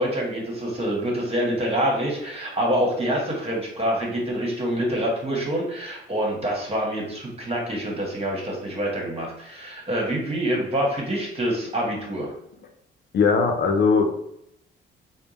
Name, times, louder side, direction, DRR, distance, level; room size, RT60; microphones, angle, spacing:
voice 1, 0.0-12.3, equal, 30° right, -1 dB, 1.4 m, -26 dB
voice 2, 13.1-14.1, left 5 dB, 60° left, 5 dB, 0.6 m, -19 dB
3.5 x 2.2 x 4.1 m, 0.76 s
cardioid pair, 90°, 20 cm